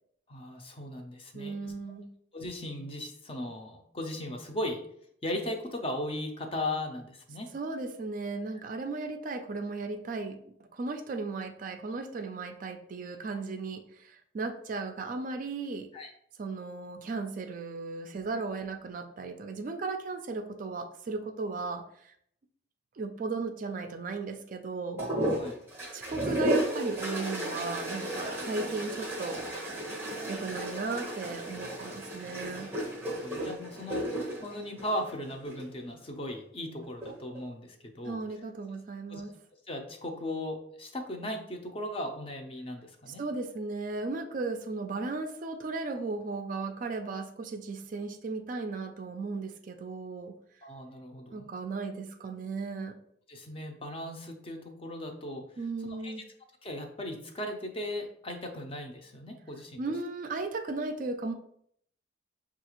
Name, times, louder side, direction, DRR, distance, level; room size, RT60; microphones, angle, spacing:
voice 1, 0.3-1.6 2.3-4.8 5.2-7.5 15.9-16.1 25.4-25.6 33.1-38.2 39.1-39.2 39.7-43.2 50.6-51.5 53.3-55.4 55.8-56.1 56.6-59.8, left 1 dB, 30° left, 4 dB, 0.5 m, -37 dB
voice 2, 1.3-2.1 7.5-15.9 16.4-22.1 23.0-25.0 25.9-32.8 38.0-39.3 43.1-50.4 51.3-53.0 55.6-56.3 59.8-61.3, right 3 dB, 45° right, 6 dB, 0.3 m, -36 dB
sound 1, 25.0-35.7 36.8-37.4, right 1 dB, 10° right, 0.7 m, -34 dB
5.6 x 2.4 x 3.0 m, 0.68 s
head